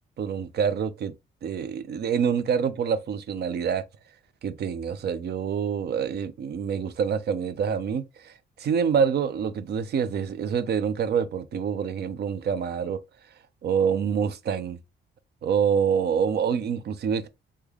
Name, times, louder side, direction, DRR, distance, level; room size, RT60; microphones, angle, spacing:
voice 1, 0.2-1.1 1.4-3.8 4.4-13.0 13.6-14.8 15.4-17.3, right 7 dB, 55° right, 0.5 m, -26 dB
3.2 x 2.2 x 3.4 m
cardioid pair, 90°, 20 cm